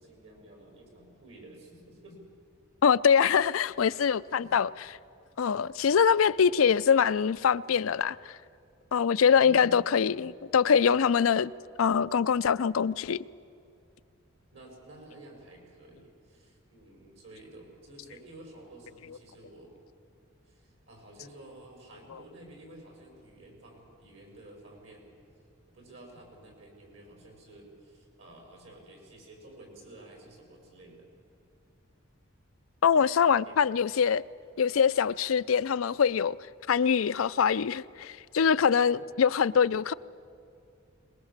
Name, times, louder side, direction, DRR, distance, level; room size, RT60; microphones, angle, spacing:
voice 1, 0.0-2.2 4.3-4.5 9.3-9.8 14.5-19.7 20.4-25.1 25.7-31.1 33.4-33.6 39.0-39.1, right 1 dB, 65° right, 5.6 m, -51 dB
voice 2, 2.8-4.7 5.4-8.3 8.9-11.5 11.8-13.2 32.8-34.2 34.6-36.4 36.7-39.9, left 7 dB, 85° left, 0.5 m, -24 dB
22.5 x 20.5 x 7.4 m
head